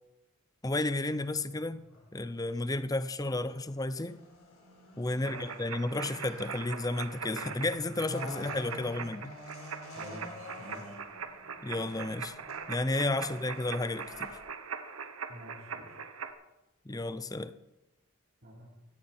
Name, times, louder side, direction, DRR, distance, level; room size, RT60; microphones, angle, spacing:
voice 1, 0.6-1.8 2.1-4.2 5.0-9.3 11.6-12.4 12.7-14.3 16.9-17.5, left 2 dB, 15° left, 13 dB, 0.6 m, -32 dB
sound 1, 0.9-14.4, left 1 dB, 70° left, 4.2 m, -49 dB
voice 2, 5.1-5.5 9.9-11.0 15.3-15.9 18.4-18.7, equal, 45° right, -6 dB, 3.9 m, -48 dB
sound 2, 5.2-16.3, right 6 dB, 75° right, 1.2 m, -42 dB
16.0 x 14.5 x 4.4 m, 0.95 s
head